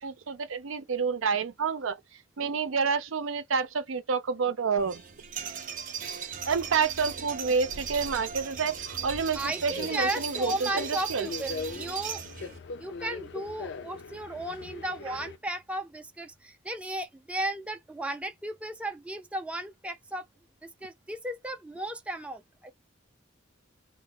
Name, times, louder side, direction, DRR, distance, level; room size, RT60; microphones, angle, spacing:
voice 1, 0.0-2.0 2.4-5.0 6.5-11.3 15.1-15.2, right 5 dB, 80° right, 0.6 m, -29 dB
sound 1, 4.8-12.6, right 7 dB, 45° right, 0.6 m, -38 dB
Subway metro underground, 7.4-15.4, left 4 dB, 60° left, 0.4 m, -42 dB
voice 2, 9.3-12.2 12.8-20.3 20.6-22.7, right 1 dB, 5° right, 0.4 m, -35 dB
2.1 x 2.0 x 3.6 m
head